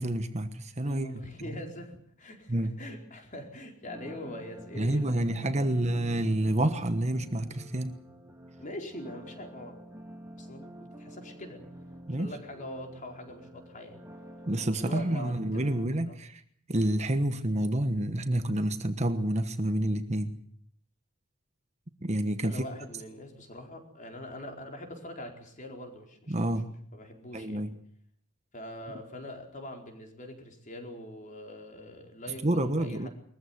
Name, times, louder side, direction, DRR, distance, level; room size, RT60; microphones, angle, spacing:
voice 1, 0.0-1.6 2.5-2.8 4.8-7.9 12.1-12.3 14.5-16.4 16.7-20.4 22.0-22.6 26.3-26.7 27.3-27.7 32.4-33.1, right 1 dB, 30° right, 9 dB, 1.2 m, -29 dB
voice 2, 0.8-5.7 8.6-9.7 10.4-11.6 12.2-14.0 14.8-16.2 22.4-26.3 26.9-27.7 28.5-33.1, left 1 dB, 35° left, 3 dB, 4.6 m, -43 dB
sound 1, 3.9-15.9, equal, 15° right, 2.4 m, -48 dB
22.0 x 15.0 x 9.5 m, 0.63 s
head